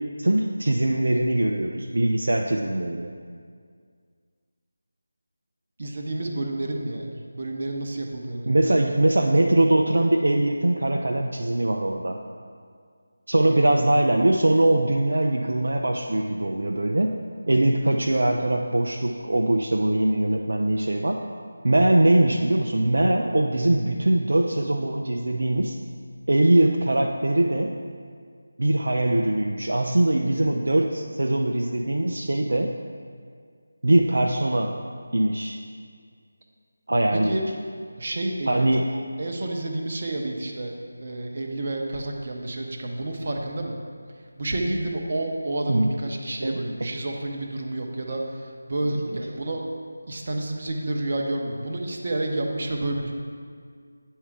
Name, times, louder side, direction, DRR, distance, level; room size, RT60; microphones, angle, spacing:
voice 1, 0.2-3.1 8.5-12.2 13.3-17.2 17.5-21.2 21.6-25.8 26.3-27.7 28.6-32.7 33.8-34.8 35.1-35.6 36.9-37.3 38.5-38.9 45.7-45.9 46.4-46.6, right 1 dB, 65° right, 2 dB, 0.4 m, -22 dB
voice 2, 5.8-8.8 13.7-13.9 37.1-37.4 38.0-40.7 41.0-43.8 44.4-49.7 50.1-53.1, right 2 dB, 40° right, 1 dB, 0.7 m, -30 dB
8.9 x 3.7 x 4.6 m, 2.1 s
figure-of-eight pair, 160°, 0 cm